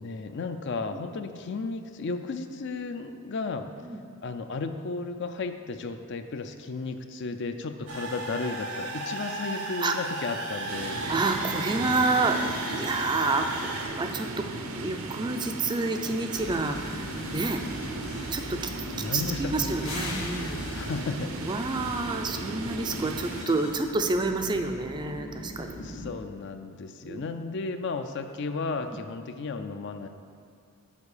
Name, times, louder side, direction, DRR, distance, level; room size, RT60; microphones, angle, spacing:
voice 1, 0.0-3.7 4.2-11.0 18.9-19.7 20.7-21.8 25.7-30.1, left 4 dB, 55° left, 8 dB, 0.4 m, -34 dB
sound 1, 7.9-13.9, right 2 dB, 80° right, 1.2 m, -35 dB
sound 2, 10.7-23.5, right 2 dB, 65° right, 0.6 m, -37 dB
voice 2, 11.1-14.4 14.7-17.6 18.3-18.7 19.0-20.6 21.4-26.0 27.0-27.2, right 3 dB, 20° right, 5 dB, 0.4 m, -29 dB
sound 3, 16.3-26.1, left 1 dB, 85° left, 1.1 m, -39 dB
7.3 x 4.6 x 6.6 m, 2.4 s
head